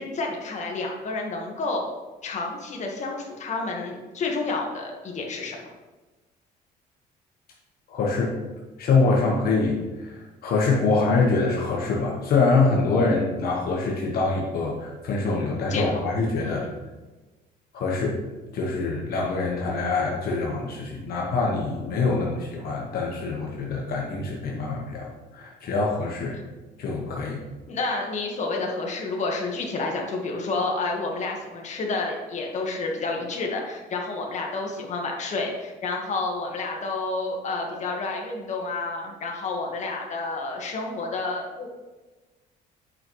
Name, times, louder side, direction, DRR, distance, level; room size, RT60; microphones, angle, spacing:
voice 1, 0.0-1.9 2.2-5.6 15.7-16.0 16.4-16.8 26.3-26.4 27.7-41.7, left 3 dB, 45° left, 0 dB, 1.5 m, -30 dB
voice 2, 7.9-8.4 8.8-16.6 17.7-18.2 18.5-26.4 26.8-27.4, left 3 dB, 65° left, -2 dB, 1.3 m, -24 dB
8.6 x 5.3 x 3.1 m, 1.2 s
cardioid pair, 110°, 17 cm